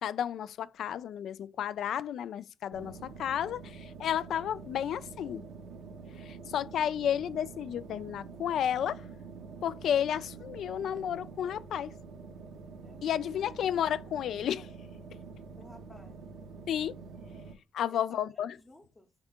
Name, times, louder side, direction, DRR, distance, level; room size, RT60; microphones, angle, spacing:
voice 1, 0.0-5.4 6.2-9.0 9.6-11.9 13.0-14.7 16.7-16.9 17.7-18.6, left 9 dB, 70° left, 0.3 m, -32 dB
sound 1, 2.7-17.5, right 4 dB, 80° right, 0.7 m, -47 dB
voice 2, 12.8-13.8 15.5-16.2 17.9-18.2 18.6-19.1, left 1 dB, 15° left, 0.6 m, -53 dB
3.7 x 3.5 x 3.5 m
cardioid pair, 90°, 0 cm